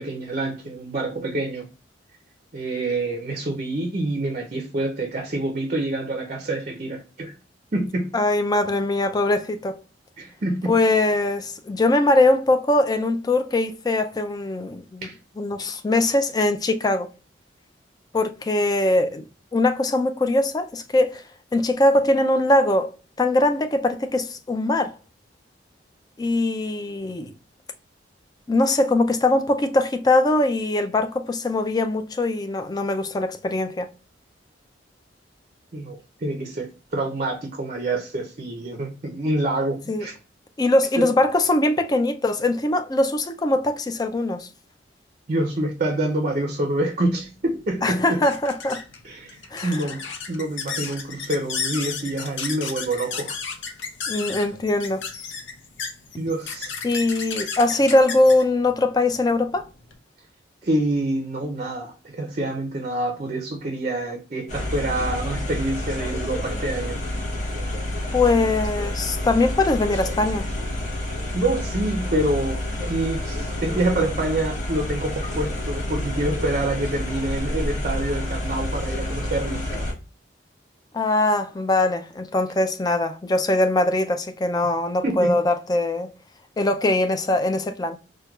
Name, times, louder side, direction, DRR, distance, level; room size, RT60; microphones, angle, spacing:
voice 1, 0.0-1.7 2.5-7.3 7.7-8.2 10.2-10.8 15.0-15.2 35.7-40.2 41.0-41.1 45.3-48.3 49.0-53.4 56.2-56.8 60.6-67.0 71.3-79.8 85.0-85.4, right 2 dB, 40° right, 0.5 m, -27 dB
voice 2, 8.1-9.8 10.6-15.1 15.4-17.1 18.1-19.2 19.5-21.2 21.5-22.9 23.2-24.9 26.2-27.3 28.5-33.9 39.9-40.1 40.6-44.5 47.8-48.8 49.5-49.8 54.1-55.1 56.8-59.6 68.1-70.5 80.9-86.1 86.6-88.0, left 2 dB, 20° left, 0.3 m, -21 dB
sound 1, 47.2-60.0, left 5 dB, 75° left, 0.6 m, -34 dB
sound 2, 64.5-79.9, left 1 dB, 40° left, 0.9 m, -29 dB
4.4 x 2.2 x 2.2 m
head